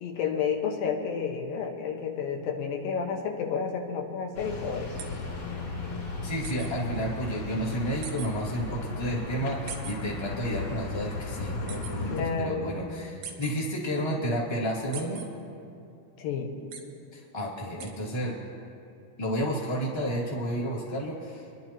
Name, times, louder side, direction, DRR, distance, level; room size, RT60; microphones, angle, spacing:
voice 1, 0.0-4.9 12.1-12.7 16.2-16.5, left 6 dB, 90° left, 3 dB, 2.9 m, -30 dB
sound 1, 4.3-12.2, left 3 dB, 40° left, 3.4 m, -36 dB
sound 2, 5.0-5.1 6.4-6.7 8.0-8.3 9.7-10.0 11.7-11.9 13.2-13.5 14.9-15.3 16.7-16.8 17.8-17.9, right 8 dB, 85° right, 2.8 m, -39 dB
voice 2, 6.2-15.2 17.1-18.3 19.2-21.5, equal, 10° left, -4 dB, 1.2 m, -31 dB
27.0 x 11.0 x 2.9 m, 2.6 s
omnidirectional pair, 4.0 m